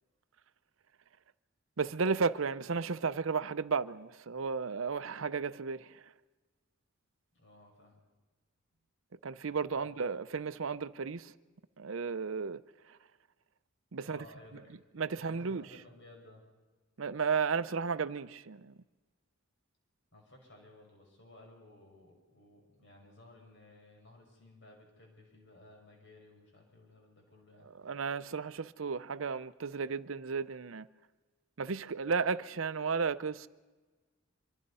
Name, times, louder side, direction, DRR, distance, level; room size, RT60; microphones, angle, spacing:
voice 1, 1.8-6.1 9.2-11.3 11.8-13.0 13.9-14.3 14.5-14.6 15.0-15.6 17.0-18.8 27.7-30.9 31.6-33.5, right 5 dB, 70° right, 0.6 m, -34 dB
voice 2, 7.3-8.0 9.7-9.9 14.0-14.8 15.3-16.5 20.1-27.7, left 2 dB, 55° left, 5.5 m, -57 dB
25.0 x 23.0 x 5.5 m
head